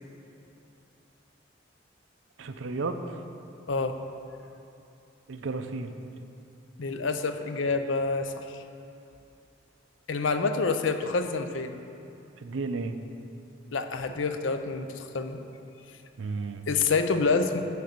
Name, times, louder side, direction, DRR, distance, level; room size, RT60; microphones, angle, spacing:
voice 1, 2.4-3.0 5.3-5.9 12.4-13.0 16.2-16.7, right 3 dB, 90° right, 8 dB, 0.6 m, -33 dB
voice 2, 6.8-8.6 10.1-11.8 13.7-15.4 16.7-17.6, left 4 dB, 80° left, 8 dB, 0.6 m, -27 dB
6.9 x 6.5 x 6.6 m, 2.7 s
head